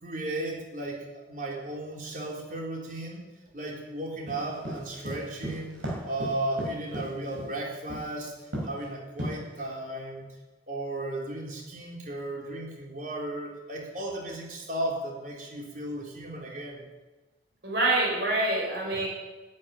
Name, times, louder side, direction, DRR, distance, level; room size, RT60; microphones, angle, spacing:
voice 1, 0.0-3.2 3.5-5.8 6.0-8.3 8.6-10.3 10.7-16.8, right 1 dB, 45° right, -1 dB, 3.6 m, -35 dB
sound 1, 4.3-7.5 7.9-8.2 8.5-8.8 9.2-9.7, equal, 85° right, 5.9 m, -35 dB
voice 2, 17.6-19.1, right 2 dB, 65° right, -3 dB, 6.4 m, -26 dB
12.0 x 9.9 x 10.0 m, 1.2 s
head